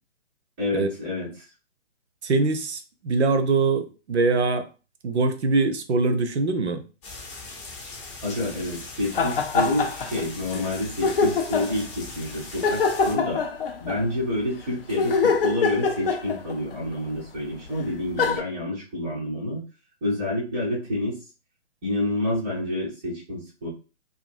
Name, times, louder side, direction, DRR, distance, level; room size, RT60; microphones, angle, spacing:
voice 1, 0.6-1.4 8.2-13.4 13.8-19.6 20.0-21.2 21.8-23.7, left 1 dB, 10° right, -6 dB, 0.4 m, -28 dB
voice 2, 2.2-4.7 5.0-6.8, right 3 dB, 65° right, 10 dB, 0.6 m, -23 dB
sound 1, 7.0-13.1, left 3 dB, 25° left, 0.7 m, -40 dB
sound 2, 9.1-10.2 10.5-10.6 11.0-11.8 12.6-14.1 14.9-16.7 17.7-17.8 18.2-18.4, left 4 dB, 50° left, 0.4 m, -24 dB
2.6 x 2.5 x 2.5 m, 0.32 s
figure-of-eight pair, 130°, 36 cm